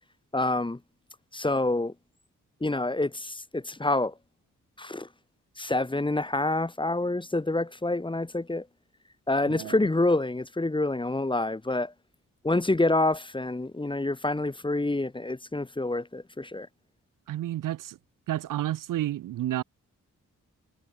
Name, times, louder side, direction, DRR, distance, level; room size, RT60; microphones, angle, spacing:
voice 1, 0.3-0.8 1.3-1.9 2.6-4.1 4.8-5.1 5.6-8.7 9.3-11.9 12.4-16.7, left 2 dB, 15° left, 1.1 m, -27 dB
voice 2, 17.3-18.0 18.3-19.6, right 13 dB, 85° right, 0.5 m, -30 dB
cardioid pair, 55°, 32 cm